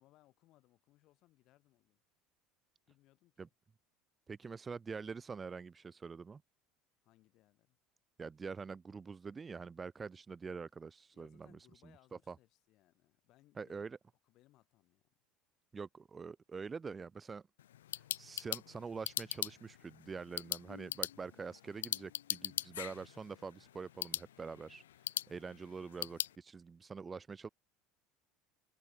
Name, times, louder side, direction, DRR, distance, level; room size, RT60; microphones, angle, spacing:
voice 1, 0.0-2.0 2.9-3.4 7.0-7.8 11.1-13.9 14.2-15.1, left 17 dB, 55° left, 7.1 m, -68 dB
voice 2, 4.3-6.4 8.2-12.4 13.6-14.0 15.7-17.4 18.2-24.8 25.3-27.5, right 5 dB, 25° right, 0.8 m, -45 dB
sound 1, 17.6-26.3, left 12 dB, 80° left, 0.4 m, -41 dB
hypercardioid pair, 70°, 0 cm